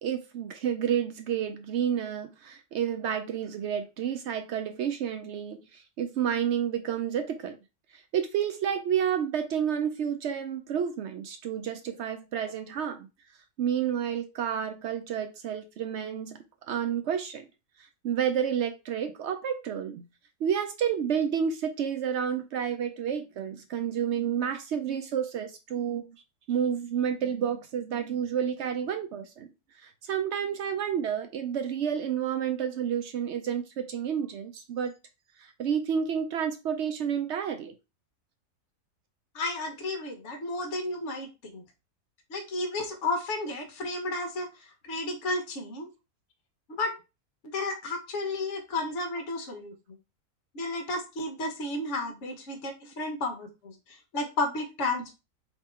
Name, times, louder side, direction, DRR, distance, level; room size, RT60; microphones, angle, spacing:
voice 1, 0.0-7.6 7.9-13.1 13.6-16.4 16.7-17.5 18.0-20.1 20.4-26.1 26.5-29.5 29.8-34.9 35.4-37.7, right 8 dB, 75° right, 0.6 m, -30 dB
voice 2, 39.3-41.6 42.3-45.9 46.7-47.0 47.5-50.0 50.5-55.2, left 2 dB, 50° left, 1.2 m, -33 dB
3.7 x 2.9 x 4.3 m
omnidirectional pair, 1.7 m